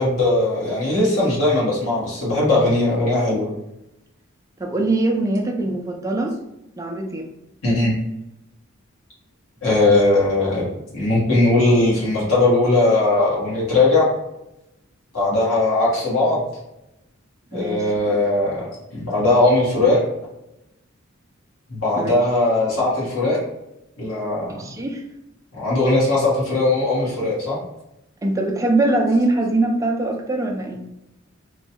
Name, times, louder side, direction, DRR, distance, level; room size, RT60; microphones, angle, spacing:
voice 1, 0.0-3.5 7.6-7.9 9.6-10.7 10.9-14.1 15.1-16.4 17.5-18.7 18.9-20.0 21.7-23.4 24.0-24.6 25.5-27.6, left 2 dB, 90° left, -7 dB, 1.3 m, -19 dB
voice 2, 4.6-6.4 6.8-7.2 17.5-17.8 18.1-18.2 22.0-22.1 24.5-25.0 28.2-30.8, right 2 dB, 15° right, 1 dB, 0.4 m, -22 dB
3.0 x 2.3 x 2.7 m, 0.88 s
head